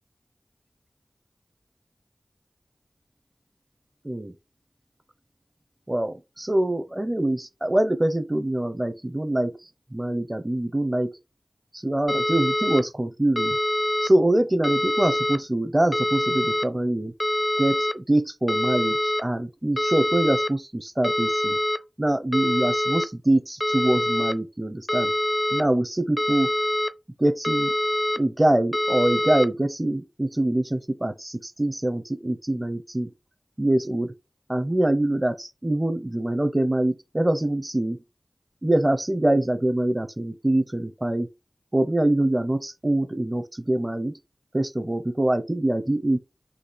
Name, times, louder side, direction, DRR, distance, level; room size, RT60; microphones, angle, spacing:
voice 1, 5.9-9.5 9.9-11.1 11.8-13.6 14.0-17.1 17.6-21.6 22.0-25.1 25.5-26.5 27.2-27.7 28.1-33.1 33.6-34.1 34.5-38.0 38.6-41.3 41.7-44.1 44.5-46.2, right 1 dB, 25° right, 0.6 m, -24 dB
sound 1, 12.1-12.8 13.4-14.1 14.6-15.4 15.9-16.6 17.2-17.9 18.5-19.2 19.8-20.5 21.0-21.8 22.3-23.0 23.6-24.3 24.9-25.6 26.2-26.9 27.4-28.2 28.7-29.5, left 1 dB, 25° left, 0.5 m, -24 dB
4.1 x 2.8 x 4.0 m
wide cardioid pair, 40°, 0 cm